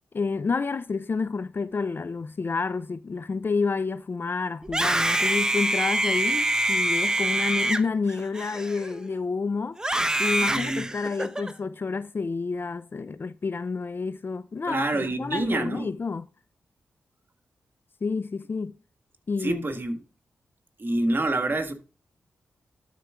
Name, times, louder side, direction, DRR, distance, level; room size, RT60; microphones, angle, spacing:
voice 1, 0.1-9.8 10.2-16.3 18.0-18.7 19.3-19.7, left 4 dB, 45° left, 0.5 m, -29 dB
Screaming, 4.6-9.1 9.8-11.5, right 1 dB, 15° right, 0.9 m, -25 dB
voice 2, 10.4-10.9 14.6-15.9 19.4-20.0 20.8-21.7, right 2 dB, 45° right, 1.6 m, -27 dB
12.0 x 4.5 x 3.7 m
supercardioid pair, 40°, 5 cm